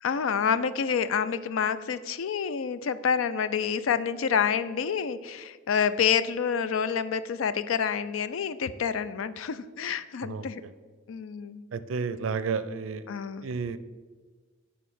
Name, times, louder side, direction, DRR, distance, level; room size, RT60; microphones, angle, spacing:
voice 1, 0.0-10.6 11.1-11.6 13.1-13.5, left 7 dB, 75° left, 14 dB, 0.4 m, -28 dB
voice 2, 11.7-13.0 13.4-13.8, right 5 dB, 75° right, 13 dB, 0.4 m, -31 dB
9.0 x 3.6 x 6.1 m, 1.4 s
head